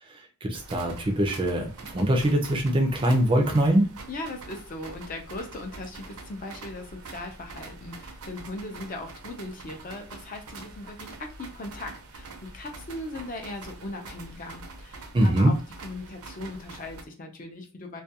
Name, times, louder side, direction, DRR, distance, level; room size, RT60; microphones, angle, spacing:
voice 1, 0.1-3.9 15.1-15.5, right 1 dB, 25° right, 2 dB, 0.4 m, -23 dB
sound 1, 0.5-17.0, right 3 dB, 80° right, 0.5 m, -44 dB
voice 2, 4.1-18.0, left 2 dB, 35° left, 3 dB, 0.4 m, -39 dB
2.3 x 2.2 x 2.7 m, 0.36 s
head